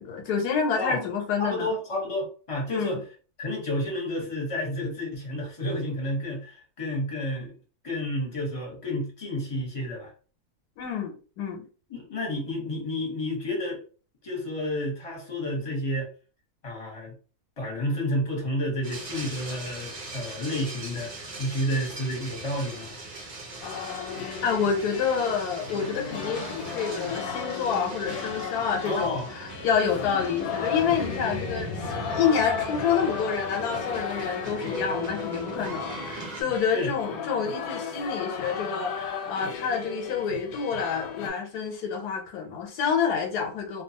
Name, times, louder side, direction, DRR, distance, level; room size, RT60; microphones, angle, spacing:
voice 1, 0.0-1.7 2.7-3.0 10.8-11.6 24.4-43.8, left 6 dB, 90° left, 2 dB, 1.2 m, -28 dB
voice 2, 1.4-3.0 3.4-7.5 7.8-10.1 11.9-13.8 14.2-16.1 16.6-17.1 17.6-21.1 21.4-22.9 28.8-29.3 34.4-34.5 36.7-36.9, left 1 dB, 25° left, -1 dB, 0.8 m, -30 dB
sound 1, 18.8-36.4, right 2 dB, 60° right, 0.4 m, -39 dB
sound 2, 23.6-41.3, left 6 dB, 70° left, 0.9 m, -35 dB
2.5 x 2.3 x 2.7 m, 0.38 s
omnidirectional pair, 1.6 m